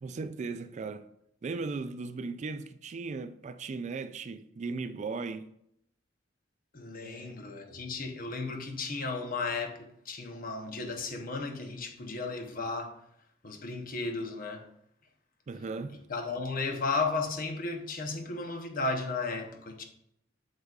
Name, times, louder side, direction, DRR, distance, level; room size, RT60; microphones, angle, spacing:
voice 1, 0.0-1.1 1.4-5.5 7.0-7.4 15.5-16.0, right 4 dB, 40° right, 0.3 m, -37 dB
voice 2, 6.7-13.0 13.4-14.6 16.1-19.9, left 3 dB, 50° left, 0.9 m, -34 dB
7.9 x 6.6 x 2.4 m
head